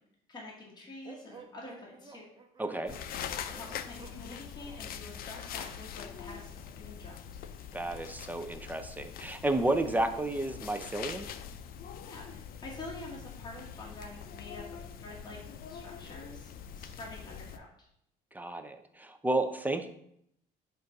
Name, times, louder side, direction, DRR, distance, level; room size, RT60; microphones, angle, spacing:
voice 1, 0.3-2.3 3.5-7.4 12.0-15.4 15.7-17.9, left 2 dB, 25° left, -5 dB, 2.0 m, -47 dB
sound 1, 1.0-5.9, right 4 dB, 25° right, 1.0 m, -53 dB
voice 2, 2.6-3.0 7.7-11.3 18.3-19.9, right 2 dB, 10° right, 7 dB, 0.6 m, -32 dB
sound 2, 2.9-17.6, left 8 dB, 60° left, 0.5 m, -43 dB
7.8 x 2.6 x 5.8 m, 0.72 s
cardioid pair, 110°, 17 cm